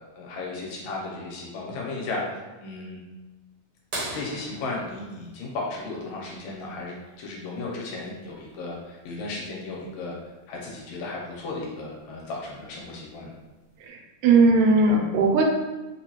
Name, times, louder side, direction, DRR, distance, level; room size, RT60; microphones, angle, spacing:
voice 1, 0.0-2.2 2.6-3.0 4.1-10.2 10.5-13.3, left 3 dB, 80° left, -3 dB, 2.2 m, -35 dB
sound 1, 3.9-6.4 8.3-8.4 10.6-10.7 12.4-12.7 13.5-13.6, right 1 dB, 65° right, 1.0 m, -37 dB
voice 2, 14.2-15.4, right 3 dB, 80° right, 1 dB, 1.9 m, -18 dB
4.8 x 2.3 x 2.9 m, 1.2 s
omnidirectional pair, 3.3 m